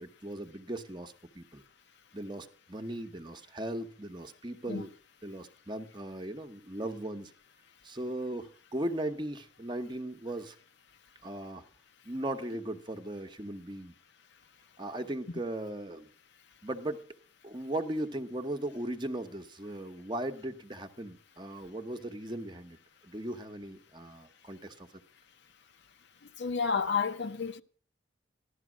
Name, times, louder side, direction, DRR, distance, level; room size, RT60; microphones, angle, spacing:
voice 1, 0.0-1.6 2.1-4.9 5.2-7.3 7.8-10.6 11.2-11.6 12.0-13.9 14.8-16.1 16.6-17.1 17.4-22.8 23.0-24.9, right 1 dB, 20° right, 0.9 m, -38 dB
voice 2, 26.4-27.6, left 5 dB, 60° left, 0.7 m, -30 dB
15.0 x 12.0 x 6.1 m
head